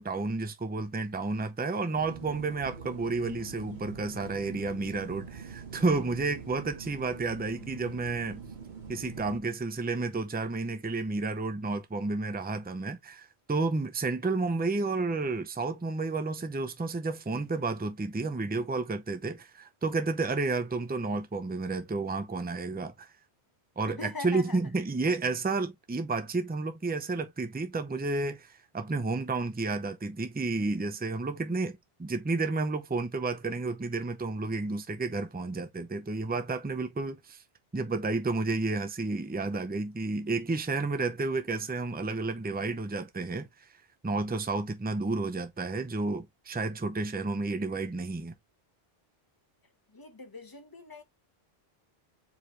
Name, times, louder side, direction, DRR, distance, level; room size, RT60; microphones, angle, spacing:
voice 1, 0.0-8.4 8.9-23.1 23.8-37.4 37.7-43.5 44.0-48.3, right 3 dB, 15° right, 0.4 m, -31 dB
sound 1, 1.9-9.4, right 5 dB, 50° right, 1.2 m, -44 dB
voice 2, 24.0-24.6 49.9-51.0, left 3 dB, 25° left, 0.7 m, -41 dB
4.7 x 2.9 x 3.2 m
omnidirectional pair, 1.0 m